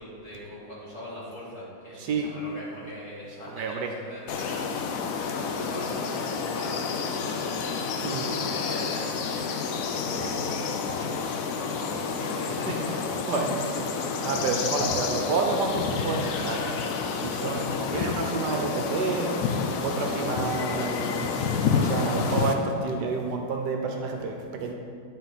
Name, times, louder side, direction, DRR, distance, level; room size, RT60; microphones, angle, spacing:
voice 1, 0.0-4.6 5.4-7.5 8.1-9.4 9.8-13.1, equal, 40° left, -9 dB, 2.4 m, -41 dB
voice 2, 2.0-2.3 3.6-3.9 8.0-8.3 12.7-12.8 13.3-16.8 17.1-19.4 19.8-21.2 21.7-24.7, right 4 dB, 75° right, 3 dB, 1.2 m, -29 dB
sound 1, 4.3-22.5, left 5 dB, 70° left, 0.8 m, -29 dB
9.9 x 4.4 x 4.0 m, 2.4 s
omnidirectional pair, 1.9 m